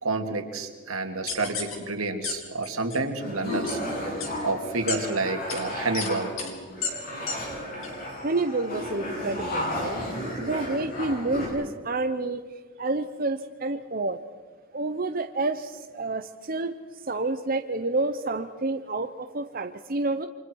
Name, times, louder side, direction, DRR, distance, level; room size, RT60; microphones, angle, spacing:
voice 1, 0.0-3.8 4.4-6.3, right 3 dB, 85° right, 4 dB, 2.7 m, -29 dB
sound 1, 1.3-1.7 2.2-2.3 2.6-3.0 3.7-3.8 4.2-4.3 4.9-5.0 5.5-5.6 5.9-6.1 6.4-6.5 6.8-6.9 7.3-7.4 7.8-7.9, left 5 dB, 70° left, 4.2 m, -31 dB
sound 2, 3.2-11.5, left 1 dB, 40° left, 7.7 m, -33 dB
voice 2, 8.2-10.0 10.4-12.4 12.8-14.2 14.7-16.7 17.1-20.3, right 2 dB, 40° right, 7 dB, 0.8 m, -29 dB
29.0 x 25.0 x 4.7 m, 1.4 s
head